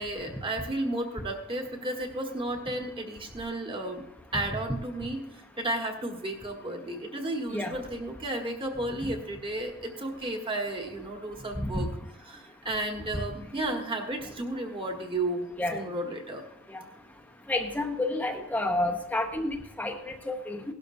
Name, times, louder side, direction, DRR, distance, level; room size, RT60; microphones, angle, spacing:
voice 1, 0.0-4.0 4.3-5.2 5.6-11.9 12.3-16.4, right 1 dB, 25° right, 3 dB, 1.5 m, -33 dB
voice 2, 17.5-20.6, left 2 dB, 5° left, 3 dB, 0.8 m, -30 dB
17.0 x 12.0 x 2.7 m, 0.80 s
head